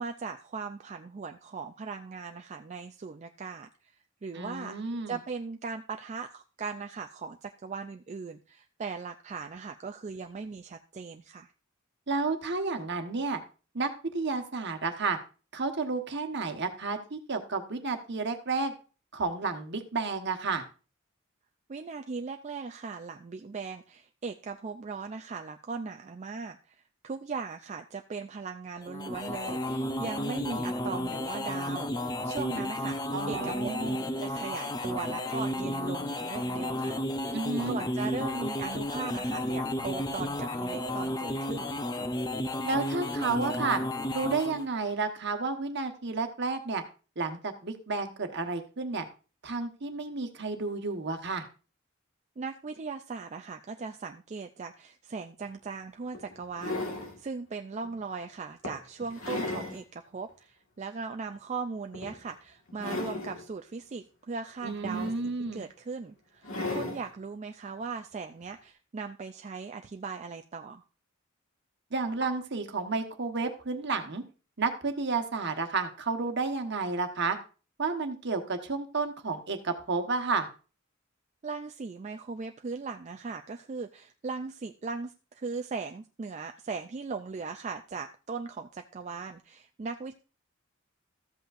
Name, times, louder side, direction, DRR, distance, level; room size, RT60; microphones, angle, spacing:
voice 1, 0.0-3.9 4.2-4.8 5.1-11.5 21.7-33.0 33.3-33.5 34.2-37.4 37.7-41.7 52.4-70.8 81.4-90.1, right 4 dB, 35° right, 6 dB, 0.4 m, -39 dB
voice 2, 4.3-5.2 12.1-13.4 13.7-15.2 15.5-18.7 19.1-20.6 33.1-34.0 37.3-37.8 42.6-43.8 44.1-46.8 47.2-49.1 49.4-51.4 64.6-65.6 71.9-74.2 74.6-77.4 77.8-80.5, right 3 dB, 55° right, 6 dB, 1.2 m, -31 dB
sound 1, 28.8-44.7, left 1 dB, 20° left, 0.6 m, -32 dB
sound 2, 55.4-55.5 56.1-57.2 57.8-58.0 58.6-59.8 60.3-60.4 61.9-62.3 62.7-63.4 64.6-65.5 66.4-67.1 68.4-68.5, left 2 dB, 75° left, 1.7 m, -36 dB
14.0 x 7.9 x 2.5 m, 0.35 s
head